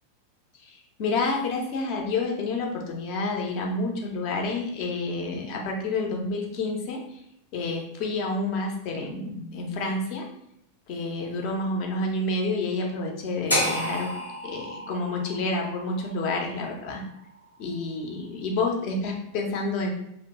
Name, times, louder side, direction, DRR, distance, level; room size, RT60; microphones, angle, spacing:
voice 1, 0.6-7.0 7.5-10.3 10.9-14.1 14.4-17.0 17.6-19.9, left 2 dB, 45° left, 0 dB, 0.6 m, -29 dB
sound 1, 13.5-17.6, equal, 80° left, 0.7 m, -31 dB
2.8 x 2.1 x 2.8 m, 0.79 s
figure-of-eight pair, 90°, 0 cm